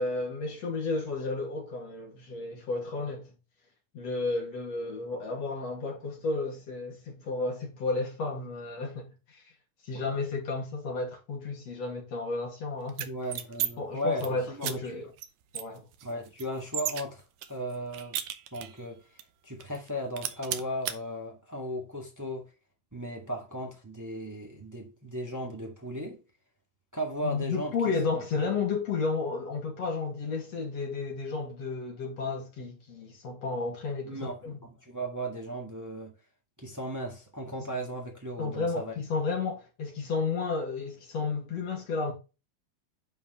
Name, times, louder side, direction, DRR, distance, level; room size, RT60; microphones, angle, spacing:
voice 1, 0.0-3.3 3.9-9.4 9.8-13.1 13.8-15.1 15.5-15.9 27.2-34.6 38.4-42.1, left 4 dB, 50° left, 3.4 m, -32 dB
sound 1, 12.9-13.7 14.0-14.3 14.6-14.7 15.2-15.3 15.5-17.0 17.4-18.8 19.2-19.3 19.6-19.9 20.2-21.0, right 11 dB, 70° right, 1.9 m, -34 dB
voice 2, 13.0-15.1 16.0-17.2 17.5-18.2 18.5-19.1 19.4-22.5 22.9-26.2 26.9-27.7 28.1-28.2 34.0-36.1 36.6-38.9, equal, 10° right, 1.0 m, -36 dB
10.0 x 4.8 x 3.2 m
omnidirectional pair, 3.9 m